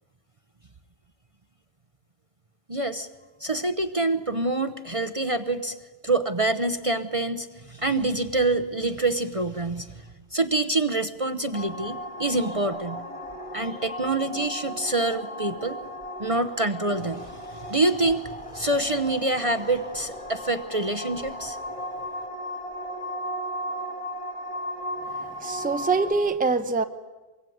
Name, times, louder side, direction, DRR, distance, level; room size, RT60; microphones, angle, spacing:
voice 1, 2.7-3.1 3.4-5.8 6.0-13.0 13.5-15.8 16.2-21.6, right 2 dB, 30° right, 10 dB, 0.9 m, -26 dB
sound 1, 11.5-26.1, equal, 25° left, 1.6 m, -36 dB
voice 2, 25.4-26.8, right 4 dB, 10° right, 9 dB, 0.8 m, -24 dB
24.0 x 23.0 x 9.4 m, 1.2 s
omnidirectional pair, 1.2 m